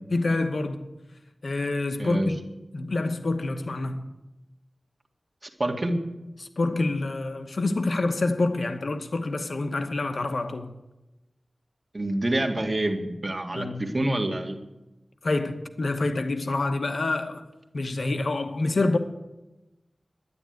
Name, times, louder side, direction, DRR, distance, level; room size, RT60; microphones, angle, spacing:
voice 1, 0.1-0.9 1.4-2.4 2.7-4.1 6.4-10.7 13.5-13.8 15.2-17.4 17.7-19.0, left 2 dB, 65° left, 1.1 m, -27 dB
voice 2, 2.0-2.3 5.4-6.0 11.9-14.6, right 1 dB, 35° right, 1.9 m, -27 dB
11.0 x 10.5 x 9.3 m
wide cardioid pair, 70°, 0 cm